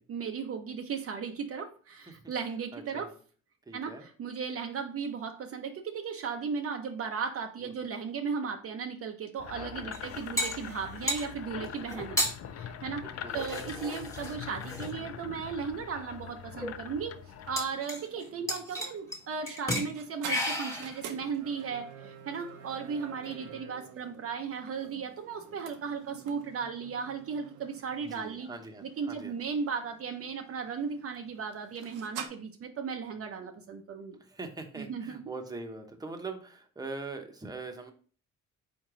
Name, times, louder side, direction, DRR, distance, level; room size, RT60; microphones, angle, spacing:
voice 1, 0.1-3.1 3.7-12.2 12.5-13.0 13.3-17.2 17.5-28.5 28.8-34.2 34.8-35.2, right 6 dB, 50° right, 4 dB, 0.6 m, -36 dB
voice 2, 2.7-3.1 3.7-4.0 7.6-7.7 9.6-10.2 13.0-13.4 18.0-18.5 22.7-23.0 23.2-23.6 28.0-29.4 34.2-37.9, right 3 dB, 15° right, 4 dB, 0.8 m, -43 dB
sound 1, 9.4-17.6, left 9 dB, 55° left, 0.5 m, -42 dB
sound 2, 9.9-11.3 11.9-12.3 13.3-14.9 15.7-15.8 16.3-16.4 16.6-16.7 17.6-18.2 18.5-19.2 19.5-19.9 20.3-21.0, left 1 dB, 10° left, 1.4 m, -33 dB
sound 3, 17.2-32.3, right 7 dB, 85° right, 0.8 m, -49 dB
4.3 x 3.2 x 3.7 m, 0.42 s
cardioid pair, 90°, 30 cm